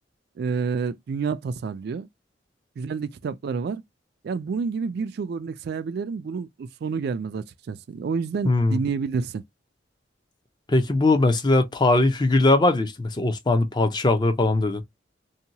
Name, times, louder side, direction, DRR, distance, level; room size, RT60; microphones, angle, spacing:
voice 1, 0.4-2.1 2.8-3.8 4.2-9.4, right 5 dB, 60° right, 0.3 m, -29 dB
voice 2, 8.4-8.8 10.7-14.8, left 2 dB, 25° left, 0.5 m, -20 dB
2.8 x 2.2 x 2.7 m
head